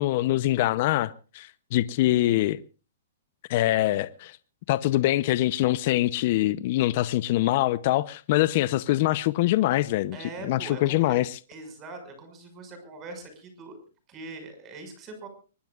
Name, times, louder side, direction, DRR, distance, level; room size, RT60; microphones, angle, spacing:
voice 1, 0.0-2.6 3.5-4.4 4.7-10.2 10.5-11.4, left 15 dB, 40° left, 0.7 m, -24 dB
voice 2, 10.1-11.2 11.5-13.8 14.1-15.3, right 3 dB, 20° right, 5.9 m, -42 dB
24.0 x 20.5 x 2.4 m
hypercardioid pair, 160°, 0 cm